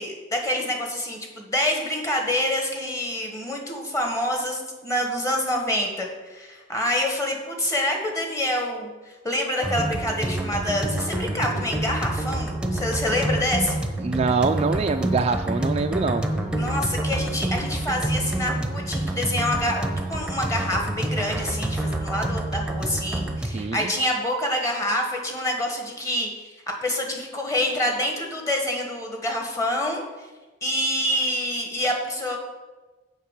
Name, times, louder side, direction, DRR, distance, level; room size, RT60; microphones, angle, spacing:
voice 1, 0.0-13.8 16.6-26.5 26.8-30.0 30.6-32.4, left 1 dB, 20° left, 1 dB, 1.5 m, -27 dB
sound 1, 9.6-23.6, right 1 dB, 5° right, 0.8 m, -27 dB
voice 2, 14.0-16.3 23.5-23.9, right 4 dB, 35° right, 7 dB, 0.3 m, -24 dB
7.2 x 5.5 x 7.4 m, 1.2 s
head